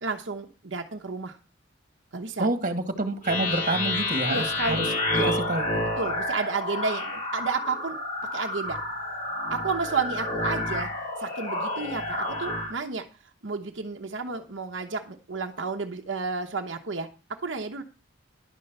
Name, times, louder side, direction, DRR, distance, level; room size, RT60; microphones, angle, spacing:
voice 1, 0.0-1.4 2.1-2.5 4.3-4.8 5.1-5.4 6.0-8.0 8.3-8.8 9.5-10.9 11.2-13.0 13.4-17.1 17.4-17.8, right 4 dB, 75° right, 1.0 m, -31 dB
voice 2, 2.4-4.4 4.7-4.9 5.5-5.9, right 2 dB, 40° right, 1.7 m, -27 dB
sound 1, 3.2-12.7, left 2 dB, 45° left, 4.3 m, -29 dB
11.0 x 5.5 x 7.9 m
head